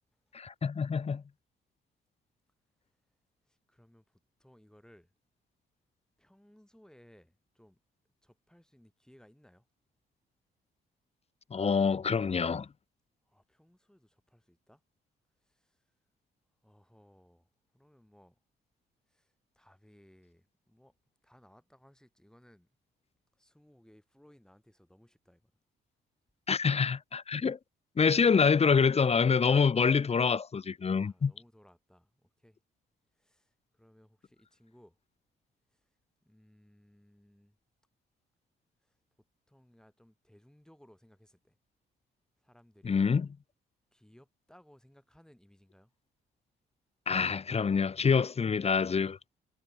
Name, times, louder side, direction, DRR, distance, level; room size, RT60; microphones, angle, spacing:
voice 1, 0.3-1.2 11.5-12.7 26.5-27.6 28.0-31.3 42.8-43.3 47.1-49.2, left 5 dB, 30° left, 0.9 m, -26 dB
voice 2, 3.7-4.0 4.4-5.1 6.2-7.8 8.2-9.6 13.3-14.8 16.6-17.5 17.7-18.3 19.1-19.3 19.6-20.9 21.2-22.7 23.4-25.4 31.0-32.6 33.2-33.5 33.8-35.0 36.3-37.5 39.5-41.5 42.4-43.0 43.9-45.9, equal, 5° left, 6.3 m, -61 dB
cardioid pair, 90°, 20 cm